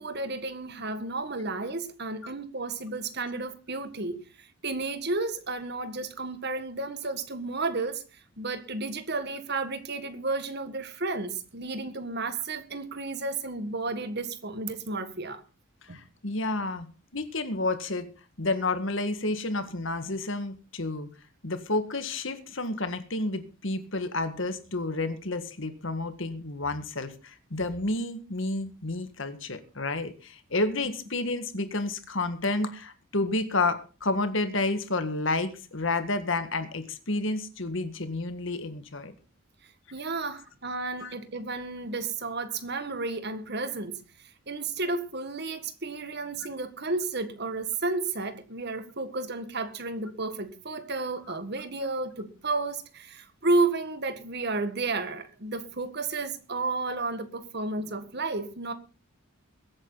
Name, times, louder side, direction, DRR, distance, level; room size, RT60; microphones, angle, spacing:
voice 1, 0.0-8.0 8.4-15.4 15.9-16.0 39.9-44.0 44.5-58.7, right 3 dB, 50° right, 1.7 m, -32 dB
voice 2, 15.8-16.9 17.1-18.1 18.4-21.1 21.4-39.1 41.0-41.1, left 2 dB, 60° left, 1.8 m, -30 dB
22.5 x 8.8 x 4.0 m
head